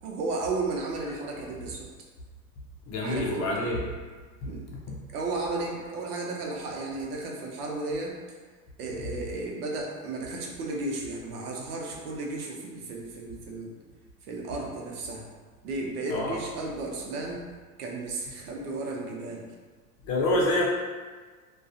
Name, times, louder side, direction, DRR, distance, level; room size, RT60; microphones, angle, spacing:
voice 1, 0.0-1.9 3.0-3.5 4.4-4.6 5.1-8.2 8.8-13.8 14.3-15.3 15.6-17.4 17.8-19.5, right 2 dB, 85° right, -1 dB, 0.7 m, -34 dB
voice 2, 2.9-3.8 4.9-5.0 16.1-16.4 20.0-20.7, left 1 dB, 35° left, -3 dB, 0.6 m, -26 dB
2.4 x 2.3 x 2.5 m, 1.4 s
hypercardioid pair, 110°, 45 cm